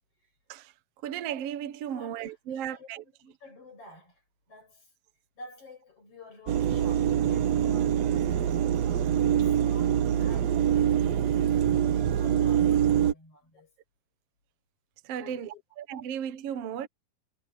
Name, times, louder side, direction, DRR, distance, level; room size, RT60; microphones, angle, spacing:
voice 1, 1.0-3.0 15.0-16.9, right 9 dB, 65° right, 1.5 m, -35 dB
voice 2, 1.9-4.9 5.3-13.7 15.1-15.6, left 2 dB, 35° left, 8.4 m, -51 dB
sound 1, 6.5-13.1, right 10 dB, 90° right, 1.5 m, -24 dB
omnidirectional pair, 4.5 m